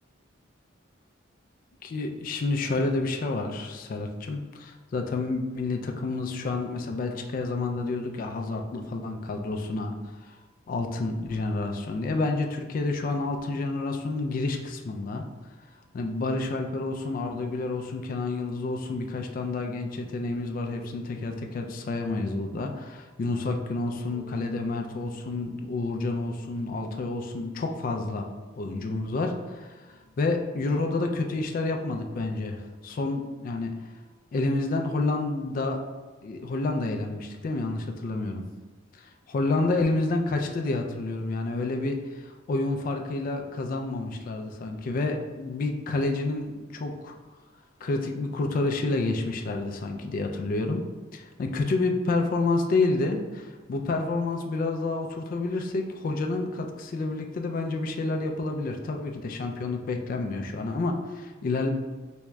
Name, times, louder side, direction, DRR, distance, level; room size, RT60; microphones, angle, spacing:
voice 1, 1.8-10.4 10.7-15.3 15.9-28.3 28.6-33.7 34.3-35.8 36.2-38.4 39.3-47.1 47.8-50.9 51.1-61.7, left 3 dB, 45° left, 4 dB, 0.3 m, -29 dB
Bass guitar, 24.0-30.3, left 2 dB, 90° right, 1.3 m, -52 dB
3.5 x 2.2 x 3.0 m, 1.3 s
head